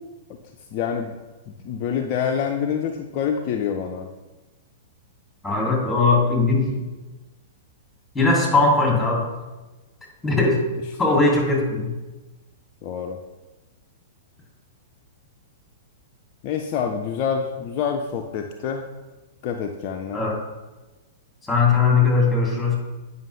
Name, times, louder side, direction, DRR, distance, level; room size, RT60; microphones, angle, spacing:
voice 1, 0.7-1.1 1.5-4.1 10.9-11.2 12.8-13.2 16.4-18.9 19.4-20.2, left 7 dB, 40° left, 3 dB, 0.5 m, -27 dB
voice 2, 5.4-6.8 8.1-9.2 10.2-10.6 11.0-11.9 20.1-20.3 21.5-22.7, left 3 dB, 5° left, -3 dB, 2.6 m, -19 dB
9.0 x 5.5 x 3.2 m, 1.2 s
figure-of-eight pair, 105°, 0 cm